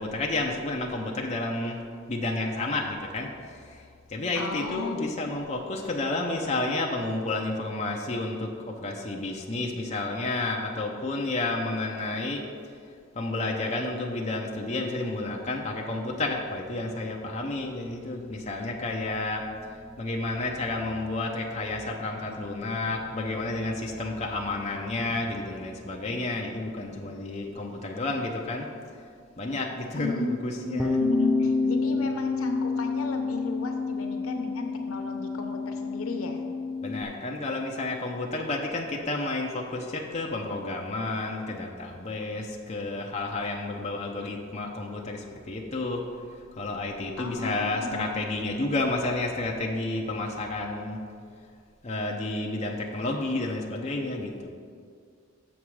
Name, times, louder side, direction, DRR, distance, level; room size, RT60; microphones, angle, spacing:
voice 1, 0.0-1.8 2.1-3.3 4.1-12.4 13.2-28.7 29.4-31.0 36.8-46.0 46.6-51.0 51.8-54.5, left 2 dB, 30° left, 0 dB, 0.6 m, -31 dB
voice 2, 4.3-5.2 29.9-36.4 47.2-48.2, left 3 dB, 85° left, 4 dB, 0.9 m, -34 dB
Bass guitar, 30.8-37.0, left 4 dB, ahead, 0.3 m, -28 dB
7.3 x 6.1 x 4.8 m, 2.2 s
head